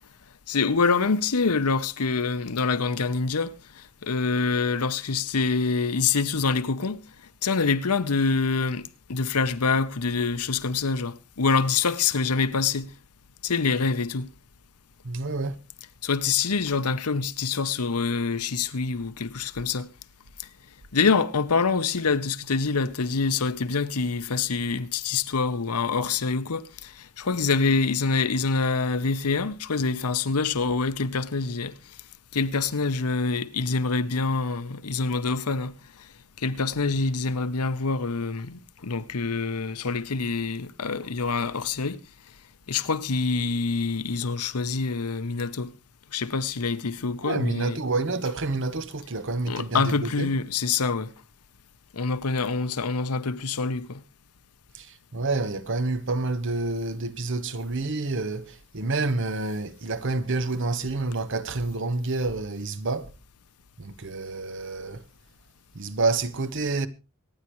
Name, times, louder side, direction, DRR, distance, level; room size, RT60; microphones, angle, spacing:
voice 1, 0.5-7.0 7.4-12.9 13.4-14.3 16.0-19.9 20.9-31.7 32.3-35.7 36.4-42.0 42.7-45.7 46.1-47.8 49.5-51.1 51.9-54.0, left 4 dB, 90° left, 0.9 m, -26 dB
voice 2, 15.0-15.6 47.2-50.3 54.7-63.1 63.8-65.0 65.7-66.9, right 3 dB, 55° right, 1.0 m, -28 dB
25.0 x 9.7 x 3.1 m
head